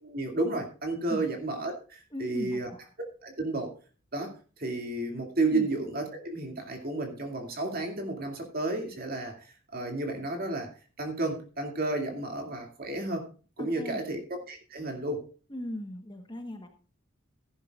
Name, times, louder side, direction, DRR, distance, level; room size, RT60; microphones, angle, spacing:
voice 1, 0.0-2.7 3.2-3.7 4.1-10.7 11.0-13.3 13.6-15.3, right 2 dB, 45° right, 3 dB, 2.4 m, -32 dB
voice 2, 2.1-2.8 5.5-5.7 13.6-14.0 15.5-16.7, left 1 dB, 20° left, 6 dB, 1.1 m, -38 dB
14.5 x 11.0 x 2.4 m, 0.36 s
head